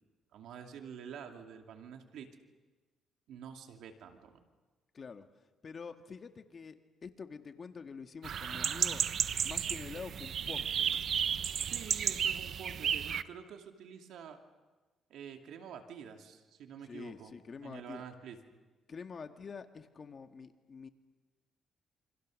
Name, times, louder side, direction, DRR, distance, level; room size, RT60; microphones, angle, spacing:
voice 1, 0.3-2.3 3.3-4.4 11.6-14.4 15.1-17.3 17.6-18.4, right 7 dB, 80° right, 5 dB, 2.6 m, -48 dB
voice 2, 4.9-5.3 5.6-6.8 7.0-9.0 9.4-11.0 16.8-18.0 18.9-20.9, left 5 dB, 40° left, 7 dB, 1.8 m, -46 dB
sound 1, 8.2-13.2, right 8 dB, 60° right, 0.8 m, -33 dB
28.0 x 26.5 x 6.5 m, 1.3 s
cardioid pair, 90°, 0 cm